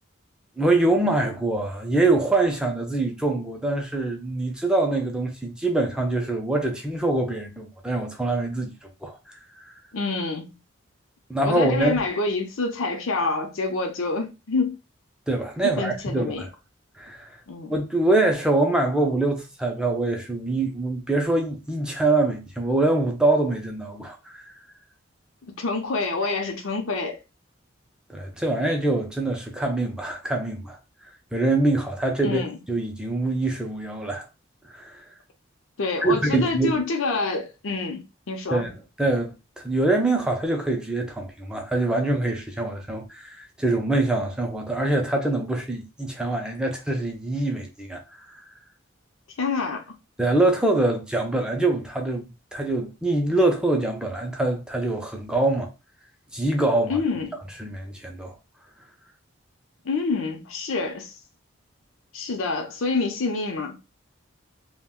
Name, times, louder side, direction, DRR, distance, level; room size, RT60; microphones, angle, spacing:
voice 1, 0.6-9.7 11.3-12.0 15.3-16.5 17.0-17.4 17.7-24.5 28.1-30.8 31.3-34.2 34.7-34.9 36.0-36.7 38.5-48.4 50.2-55.7 56.3-57.0 57.6-58.3, right 2 dB, 5° right, 0.4 m, -24 dB
voice 2, 9.9-10.6 11.4-14.8 15.6-16.5 17.5-17.7 25.5-27.2 32.2-32.6 35.8-38.6 49.4-50.0 56.9-57.4 59.8-61.2 62.1-63.7, left 3 dB, 90° left, 0.6 m, -27 dB
2.4 x 2.1 x 3.5 m
head